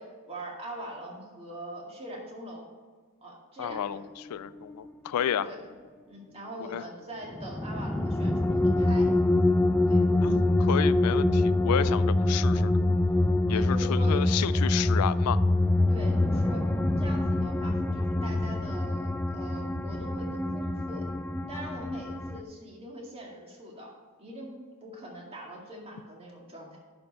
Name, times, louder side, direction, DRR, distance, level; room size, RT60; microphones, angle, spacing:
voice 1, 0.0-2.7 3.2-4.0 5.4-5.7 6.1-9.1 9.9-10.0 13.5-14.3 15.9-16.7 17.0-21.1 21.5-23.9 24.2-24.5 24.8-26.8, right 1 dB, 25° right, -2 dB, 2.1 m, -42 dB
voice 2, 3.6-4.0 4.3-5.5 6.7-6.8 10.2-12.8 13.5-15.4, left 9 dB, 85° left, 16 dB, 0.4 m, -31 dB
sound 1, 3.7-4.0 7.4-22.4, left 2 dB, 5° left, 0.3 m, -25 dB
11.0 x 5.3 x 5.5 m, 1.5 s
head